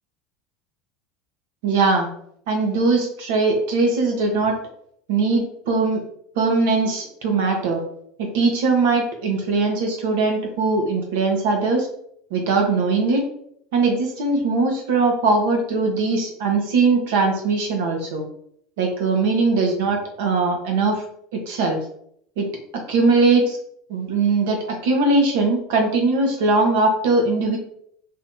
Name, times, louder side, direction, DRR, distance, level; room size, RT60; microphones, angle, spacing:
voice 1, 1.6-2.1 2.5-4.5 5.1-6.0 6.4-7.8 8.2-11.9 12.3-13.2 13.7-18.2 18.8-21.0 21.3-21.8 22.4-22.5 22.9-23.6 23.9-27.6, right 3 dB, 80° right, 2 dB, 1.0 m, -20 dB
2.7 x 2.7 x 3.6 m, 0.67 s
cardioid pair, 160°, 0 cm